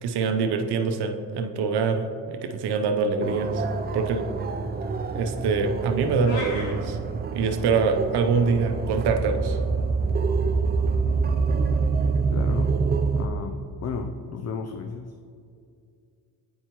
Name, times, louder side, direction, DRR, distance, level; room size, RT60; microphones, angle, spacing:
voice 1, 0.0-3.6 3.9-4.3 5.1-7.0 7.3-9.6, right 5 dB, 75° right, 6 dB, 0.7 m, -24 dB
sound 1, 3.2-13.3, right 4 dB, 25° right, 0.4 m, -26 dB
sound 2, 6.2-6.7, left 2 dB, 85° left, 1.1 m, -35 dB
voice 2, 12.3-12.8 13.1-15.1, left 5 dB, 40° left, 6 dB, 0.5 m, -33 dB
8.4 x 4.5 x 3.0 m, 2.4 s
supercardioid pair, 70°, 40 cm